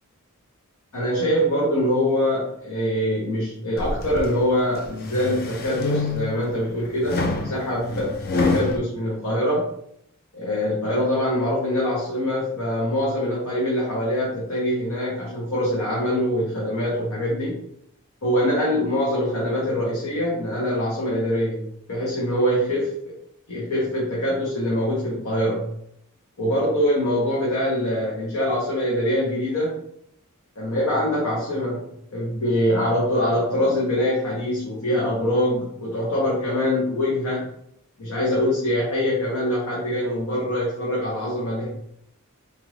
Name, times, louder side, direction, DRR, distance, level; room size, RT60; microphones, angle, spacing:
voice 1, 0.9-8.1 8.4-9.7 10.3-17.6 18.2-21.6 21.9-22.9 23.5-25.7 26.4-29.8 30.6-37.4 38.0-41.7, equal, 80° left, -6 dB, 1.2 m, -24 dB
sound 1, 3.8-4.3 4.8-6.5 7.0-8.8, left 3 dB, 45° left, 0.5 m, -26 dB
4.4 x 2.5 x 3.3 m, 0.73 s
head